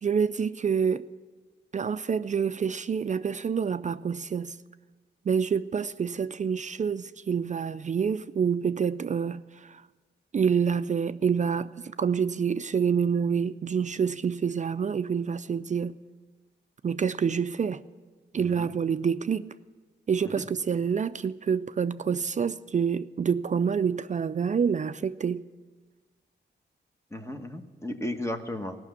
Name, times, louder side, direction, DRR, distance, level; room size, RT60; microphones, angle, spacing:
voice 1, 0.0-1.1 1.7-4.6 5.3-9.8 10.3-11.7 12.0-16.0 16.8-17.8 18.3-19.5 20.1-25.5, right 6 dB, 40° right, 0.4 m, -27 dB
voice 2, 18.4-18.7 20.3-20.5 27.1-28.8, left 1 dB, 15° left, 1.2 m, -35 dB
16.5 x 6.0 x 8.1 m
cardioid pair, 65°, 19 cm